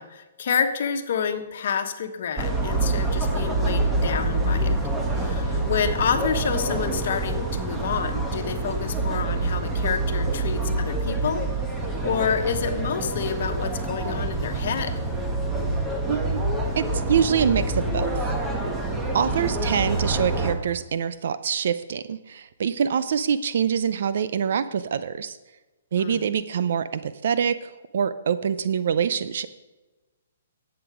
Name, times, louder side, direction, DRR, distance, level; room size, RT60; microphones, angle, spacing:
voice 1, 0.0-4.7 5.1-11.4 12.0-14.9 25.9-26.2, left 7 dB, 55° left, 7 dB, 1.2 m, -28 dB
sound 1, 2.4-20.6, right 2 dB, 10° right, 1.2 m, -26 dB
voice 2, 16.1-16.4 16.8-18.2 19.1-25.4 25.9-29.5, right 7 dB, 60° right, 13 dB, 0.5 m, -25 dB
11.0 x 8.0 x 5.0 m, 1.2 s
hypercardioid pair, 155°, 0 cm